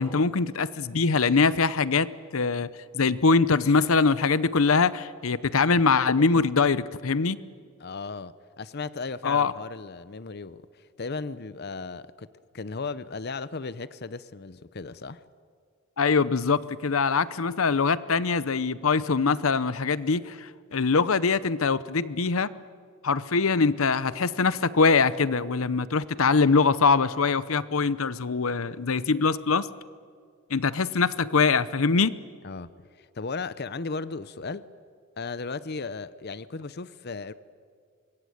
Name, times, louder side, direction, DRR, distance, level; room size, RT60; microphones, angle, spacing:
voice 1, 0.0-2.7 2.9-7.4 9.2-9.5 16.0-22.5 23.0-29.7 30.5-32.2, left 4 dB, 85° left, 0.8 m, -23 dB
voice 2, 7.8-12.3 12.5-15.2 32.4-32.7 33.0-34.6 35.2-37.3, left 4 dB, 50° left, 0.7 m, -36 dB
25.0 x 22.0 x 9.5 m
head